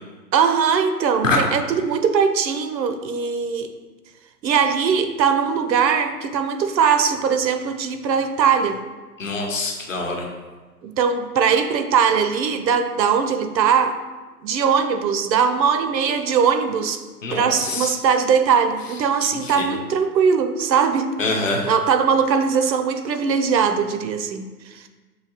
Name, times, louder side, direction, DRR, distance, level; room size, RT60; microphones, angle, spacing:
voice 1, 0.3-3.7 4.4-8.8 10.8-14.0 14.4-17.0 17.3-21.4 21.7-24.8, right 6 dB, 85° right, 8 dB, 0.6 m, -20 dB
voice 2, 9.2-10.3 17.2-17.9 19.4-19.7 21.2-21.7, left 3 dB, 50° left, 1 dB, 0.8 m, -24 dB
5.7 x 2.7 x 2.8 m, 1.3 s
hypercardioid pair, 165°, 49 cm